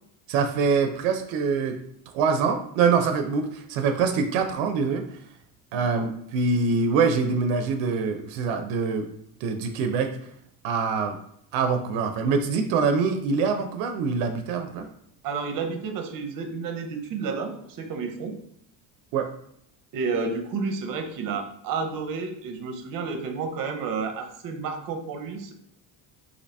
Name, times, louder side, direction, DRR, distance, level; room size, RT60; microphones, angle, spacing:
voice 1, 0.3-1.8 2.1-5.0 5.7-9.1 9.4-10.1 10.6-11.2 11.5-14.9 19.1-19.3, right 5 dB, 90° right, 6 dB, 0.5 m, -24 dB
voice 2, 5.7-6.1 15.2-18.3 19.9-25.5, right 5 dB, 50° right, 6 dB, 0.6 m, -31 dB
2.7 x 2.7 x 3.2 m, 0.71 s
cardioid pair, 120°, 44 cm